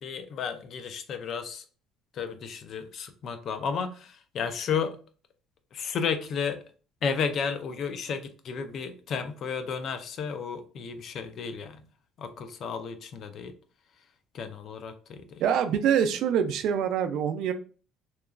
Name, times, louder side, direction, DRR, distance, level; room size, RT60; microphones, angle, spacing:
voice 1, 0.0-1.6 2.1-5.0 5.7-6.6 7.0-11.9 12.2-13.5 14.0-14.1 14.3-15.4, left 6 dB, 55° left, 8 dB, 0.4 m, -33 dB
voice 2, 15.4-17.5, right 8 dB, 70° right, 9 dB, 0.3 m, -25 dB
2.9 x 2.3 x 2.3 m, 0.39 s
cardioid pair, 105°, 0 cm